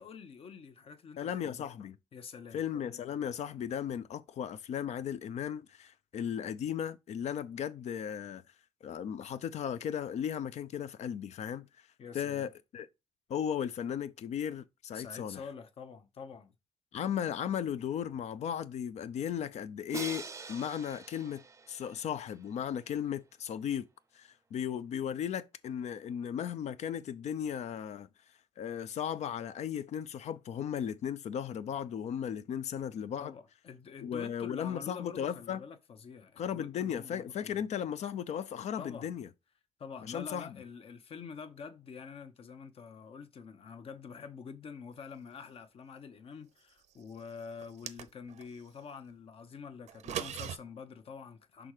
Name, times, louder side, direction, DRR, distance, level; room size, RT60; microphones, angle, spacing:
voice 1, 0.0-1.7 2.1-2.6 12.0-12.5 14.9-16.5 33.2-37.7 38.8-39.2 39.8-51.7, left 6 dB, 55° left, 0.9 m, -47 dB
voice 2, 1.2-2.0 2.5-8.4 8.8-11.7 12.1-12.9 13.3-15.4 16.9-23.9 24.1-28.1 28.6-33.3 34.0-35.6 36.4-39.3 40.0-40.6, left 9 dB, 75° left, 0.6 m, -36 dB
Crash cymbal, 19.9-22.9, right 4 dB, 25° right, 0.5 m, -45 dB
sound 1, 47.6-48.5 49.9-50.6, right 10 dB, 85° right, 0.6 m, -39 dB
6.1 x 3.8 x 4.9 m
cardioid pair, 125°, 12 cm